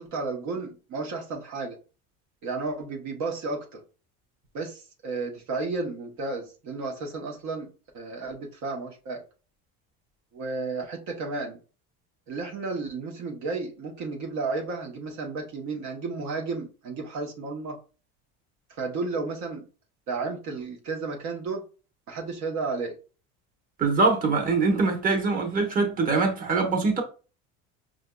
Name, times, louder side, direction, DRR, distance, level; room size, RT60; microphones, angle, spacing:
voice 1, 0.0-1.8 2.4-3.8 4.5-7.7 7.9-9.2 10.3-11.6 12.3-17.8 18.8-19.7 20.1-21.6 22.1-22.9, right 3 dB, 55° right, 1.0 m, -32 dB
voice 2, 23.8-27.0, right 3 dB, 25° right, 1.0 m, -23 dB
5.0 x 2.6 x 2.2 m
supercardioid pair, 110°, 34 cm